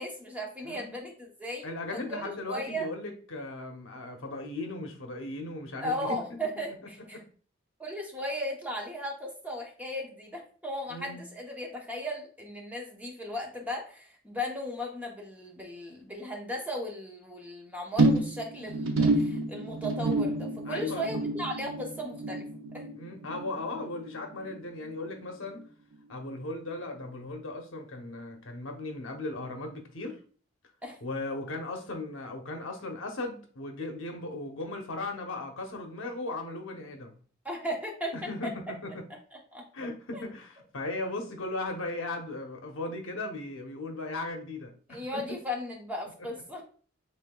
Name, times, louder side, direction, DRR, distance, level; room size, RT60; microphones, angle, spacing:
voice 1, 0.0-2.9 5.8-7.2 7.8-22.4 22.7-22.8 30.8-31.0 37.4-38.1 39.3-39.6 40.1-40.2 44.9-46.6, equal, 10° right, 0.8 m, -36 dB
voice 2, 1.6-6.4 7.1-7.2 10.9-11.2 20.7-21.1 23.0-25.7 26.1-30.2 31.0-37.1 38.1-39.0 39.7-45.4, left 2 dB, 70° left, 0.8 m, -37 dB
sound 1, 18.0-24.6 24.8-25.3 25.6-25.7, right 2 dB, 75° right, 0.7 m, -29 dB
5.5 x 3.6 x 2.3 m
head